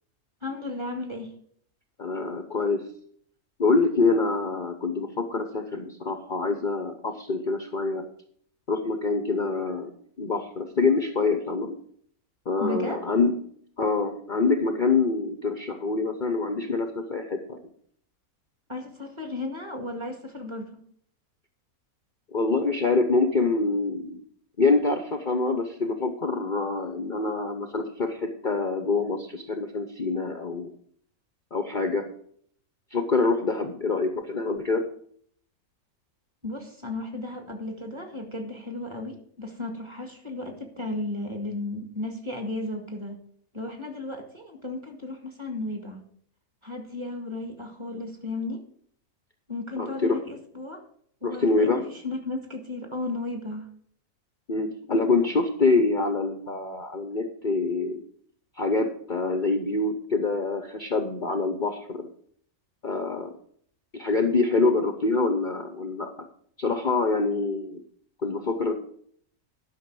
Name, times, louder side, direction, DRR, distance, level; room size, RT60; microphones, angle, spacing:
voice 1, 0.4-1.3 12.6-13.0 18.7-20.8 36.4-43.2 43.5-46.0 46.6-48.6 49.5-50.8 51.2-53.7, left 2 dB, 20° right, 3 dB, 1.9 m, -34 dB
voice 2, 2.0-2.9 3.6-8.1 8.7-9.9 10.2-11.8 12.5-13.3 13.8-17.6 22.3-24.2 24.6-30.7 31.5-32.1 32.9-34.8 49.8-50.2 51.2-51.9 54.5-58.0 58.6-62.1 62.8-63.3 63.9-66.1 66.6-67.8 68.2-68.7, left 3 dB, 40° left, 5 dB, 0.9 m, -25 dB
11.5 x 6.1 x 6.2 m, 0.62 s
omnidirectional pair, 1.6 m